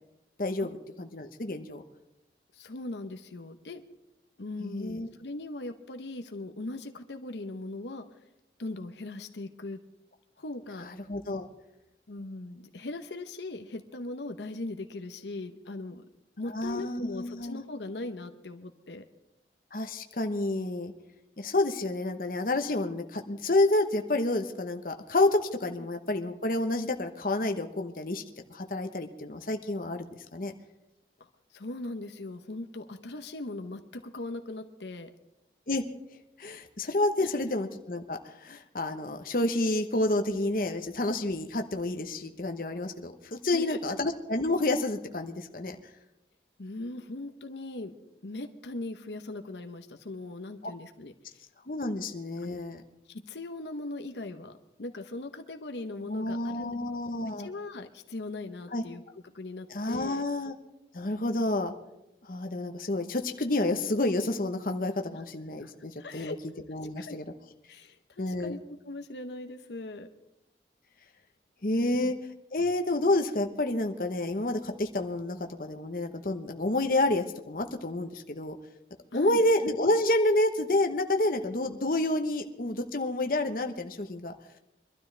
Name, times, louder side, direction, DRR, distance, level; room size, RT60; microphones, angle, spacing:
voice 1, 0.4-1.8 4.6-5.1 10.8-11.5 16.5-17.6 19.7-20.9 21.4-28.2 28.5-30.1 30.3-30.5 35.7-35.9 36.4-45.8 50.6-50.7 51.7-52.8 56.1-57.5 58.7-58.8 59.7-60.5 60.9-61.7 62.2-66.3 66.7-67.2 68.2-68.6 71.6-72.1 72.5-78.6 79.1-84.3, left 2 dB, 50° left, 5 dB, 1.0 m, -29 dB
voice 2, 2.5-3.8 4.4-8.2 8.6-9.8 10.4-10.9 12.1-16.0 16.4-19.0 25.8-25.9 31.2-35.1 37.2-37.3 43.5-43.8 46.6-47.9 48.2-51.1 52.4-52.6 53.1-56.8 57.4-60.2 65.1-65.2 65.6-65.7 66.0-66.4 67.0-67.2 67.7-68.6 68.8-70.1 71.6-72.0 79.1-79.4, left 2 dB, 85° left, 6 dB, 0.9 m, -39 dB
23.5 x 12.5 x 3.3 m, 0.87 s
head